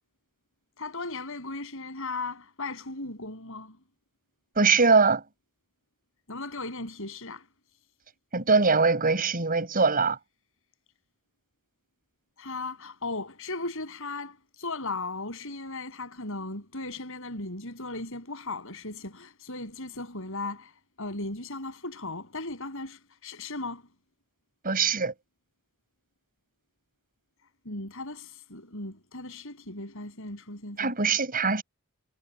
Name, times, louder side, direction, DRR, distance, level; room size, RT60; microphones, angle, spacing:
voice 1, 0.8-3.8 6.3-7.5 12.4-23.8 27.6-30.9, left 2 dB, 65° left, 7.5 m, -37 dB
voice 2, 4.6-5.2 8.3-10.2 24.6-25.1 30.8-31.6, right 4 dB, 40° right, 7.0 m, -22 dB
head